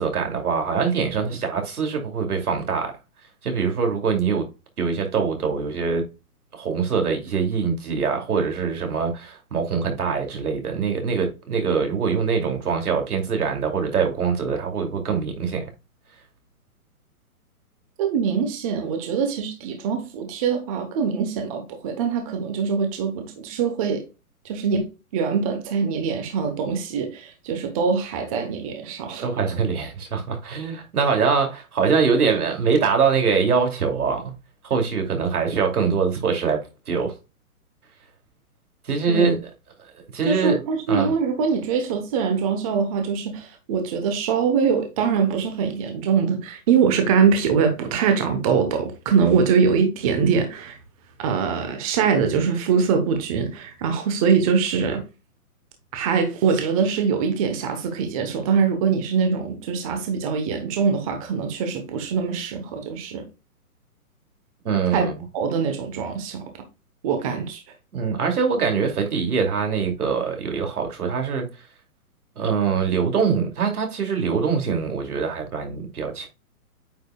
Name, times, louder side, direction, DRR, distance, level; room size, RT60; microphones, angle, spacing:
voice 1, 0.0-2.9 3.4-4.4 4.8-6.0 6.5-15.6 29.2-34.3 34.6-36.6 36.9-37.1 38.8-39.4 40.1-40.6 40.9-41.1 64.6-65.1 67.9-71.5 72.4-76.3, right 5 dB, 80° right, 2.7 m, -23 dB
voice 2, 18.0-24.0 24.4-24.9 25.1-29.3 39.1-39.3 40.2-50.8 51.2-55.0 55.9-63.2 64.9-65.1 65.3-66.6 67.0-67.6, right 6 dB, 25° right, 1.0 m, -23 dB
9.1 x 5.1 x 2.3 m
hypercardioid pair, 160°, 45 cm